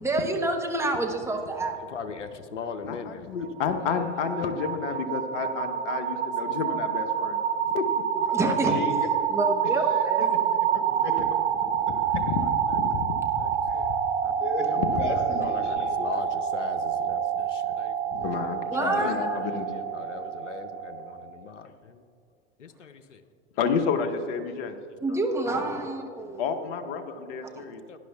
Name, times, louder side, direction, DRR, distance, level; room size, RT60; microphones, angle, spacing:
voice 1, 0.0-1.8 8.3-8.7 9.3-10.2 18.7-19.4 25.0-26.5 27.5-27.6, right 2 dB, 10° right, 3 dB, 1.1 m, -28 dB
voice 2, 1.9-3.3 3.9-4.7 5.5-6.9 7.3-7.6 12.1-12.2 13.4-13.8 14.2-14.3 14.7-14.8 15.3-17.9 18.8-19.1 19.9-22.0 22.6-23.2 25.1-25.2 26.2-26.3 27.9-28.0, left 5 dB, 85° left, 8 dB, 0.8 m, -40 dB
voice 3, 2.8-7.4 7.6-7.8 8.2-8.3 11.2-11.3 12.3-12.4 12.7-13.4 14.8-15.0 18.1-19.7 23.6-24.7 26.4-27.8, left 6 dB, 50° left, 6 dB, 1.2 m, -30 dB
sound 1, 3.4-21.3, right 8 dB, 65° right, 0.9 m, -27 dB
voice 4, 8.3-9.0 9.9-11.3 13.7-13.9 14.2-16.0, left 4 dB, 65° left, 3 dB, 1.5 m, -36 dB
17.5 x 10.5 x 2.4 m, 2.4 s
hypercardioid pair, 95°, 36 cm